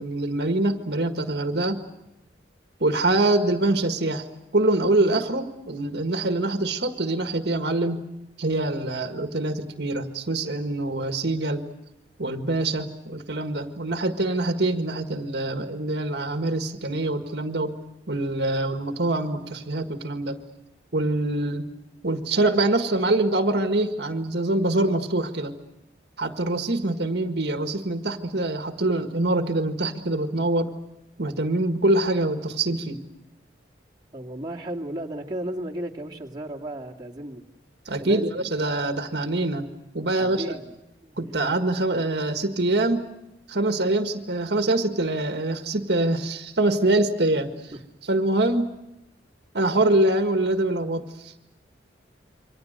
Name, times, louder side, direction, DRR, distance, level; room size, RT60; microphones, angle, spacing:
voice 1, 0.0-1.9 2.8-4.2 4.5-8.1 8.4-11.7 12.2-17.8 18.1-20.4 20.9-21.7 22.0-25.5 26.2-30.7 31.2-33.0 37.9-39.7 39.9-40.6 41.2-43.1 43.5-47.7 48.1-48.7 49.5-51.4, right 2 dB, 65° right, 7 dB, 1.8 m, -24 dB
voice 2, 34.1-37.4 38.0-38.4 40.1-41.2 47.7-47.8, right 1 dB, 25° right, -2 dB, 2.3 m, -34 dB
28.5 x 24.5 x 6.6 m, 0.89 s
head